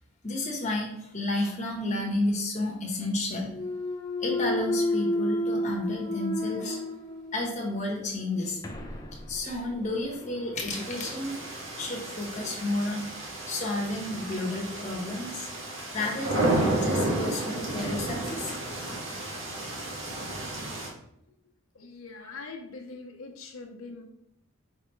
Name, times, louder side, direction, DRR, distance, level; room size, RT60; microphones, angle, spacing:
voice 1, 0.2-3.6 4.2-6.8 7.3-8.6 9.3-11.4 11.8-13.1 13.5-15.5 15.9-18.5, left 2 dB, 35° left, -2 dB, 1.2 m, -31 dB
Thump thud, 3.5-7.5 8.0-12.6, left 1 dB, 15° left, 0.5 m, -33 dB
sound 1, 10.7-20.9, right 2 dB, 65° right, 1.2 m, -32 dB
sound 2, 13.1-14.7 15.0-16.8 17.4-18.9, right 1 dB, 40° right, 1.6 m, -51 dB
voice 2, 21.7-24.0, left 3 dB, 75° left, 2 dB, 0.9 m, -43 dB
5.1 x 3.4 x 3.1 m, 0.75 s
head